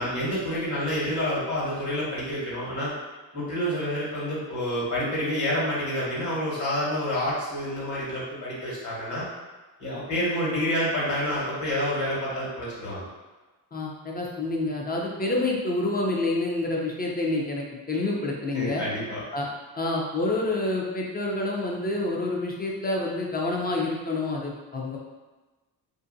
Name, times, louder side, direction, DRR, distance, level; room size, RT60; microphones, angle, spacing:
voice 1, 0.0-2.9 3.3-9.2 9.8-13.0 18.5-19.2, equal, 50° left, -7 dB, 1.4 m, -28 dB
voice 2, 13.7-18.8 19.3-19.5 19.8-25.0, left 2 dB, 25° left, -2 dB, 0.6 m, -28 dB
2.7 x 2.6 x 2.6 m, 1.2 s
cardioid pair, 80°, 38 cm